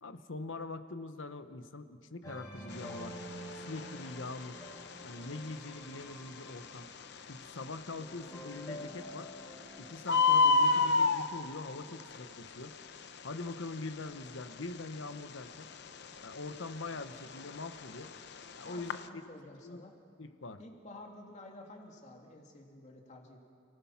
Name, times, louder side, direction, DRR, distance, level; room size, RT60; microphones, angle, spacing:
voice 1, 0.0-3.2 3.7-4.6 5.0-6.9 7.3-9.3 9.8-12.7 13.2-15.7 16.2-18.1 18.5-19.2 19.6-19.8 20.2-20.6, left 3 dB, 75° left, 10 dB, 1.1 m, -43 dB
sound 1, 2.2-7.4 8.0-10.9, equal, 15° left, 5.7 m, -48 dB
Bird, 2.7-19.1, left 4 dB, 60° left, 0.9 m, -33 dB
voice 2, 18.6-20.0 20.6-23.5, left 2 dB, 35° left, 1 dB, 2.8 m, -51 dB
30.0 x 19.0 x 5.9 m, 2.3 s
head